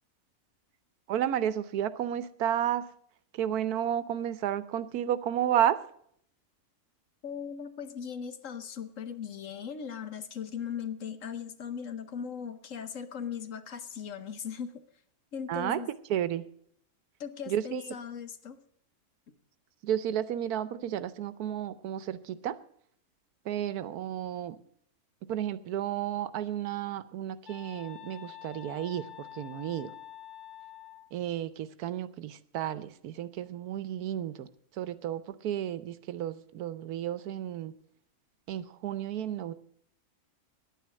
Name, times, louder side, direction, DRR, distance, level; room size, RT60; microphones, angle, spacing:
voice 1, 1.1-2.9 3.3-5.8 15.5-15.8 16.1-16.4 17.5-17.9 19.8-22.6 23.4-24.6 25.3-29.9 31.1-34.5 34.7-37.7 38.5-39.5, right 10 dB, 80° right, 15 dB, 1.2 m, -32 dB
voice 2, 7.2-14.7 15.3-15.9 17.2-18.6 19.3-19.4, left 7 dB, 60° left, 11 dB, 1.2 m, -38 dB
sound 1, 27.5-31.1, left 11 dB, 80° left, 2.0 m, -47 dB
10.5 x 9.3 x 7.6 m, 0.66 s
omnidirectional pair, 1.6 m